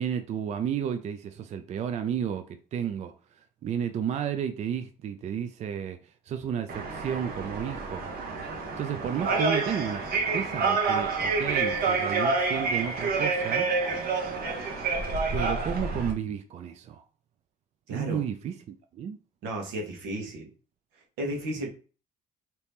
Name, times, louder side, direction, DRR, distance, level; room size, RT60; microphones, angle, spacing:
voice 1, 0.0-3.1 3.6-8.1 8.4-13.7 15.3-17.0 17.9-19.2, right 8 dB, 40° right, 0.4 m, -32 dB
sound 1, 6.7-16.1, right 4 dB, 60° right, 0.9 m, -28 dB
voice 2, 17.9-18.2 19.4-20.5 20.9-21.7, right 1 dB, 90° right, 1.1 m, -34 dB
2.9 x 2.7 x 3.5 m
cardioid pair, 110°, 17 cm